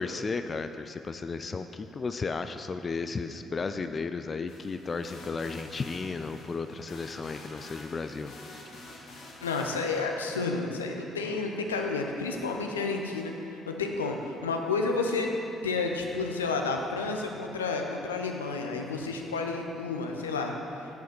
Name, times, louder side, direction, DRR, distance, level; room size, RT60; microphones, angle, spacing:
voice 1, 0.0-8.4, left 4 dB, 35° left, 9 dB, 0.3 m, -34 dB
sound 1, 4.5-10.0, left 2 dB, 55° left, 1.5 m, -48 dB
voice 2, 9.4-20.9, left 3 dB, 80° left, 3 dB, 0.6 m, -31 dB
8.0 x 7.0 x 6.1 m, 2.7 s
figure-of-eight pair, 45°, 0 cm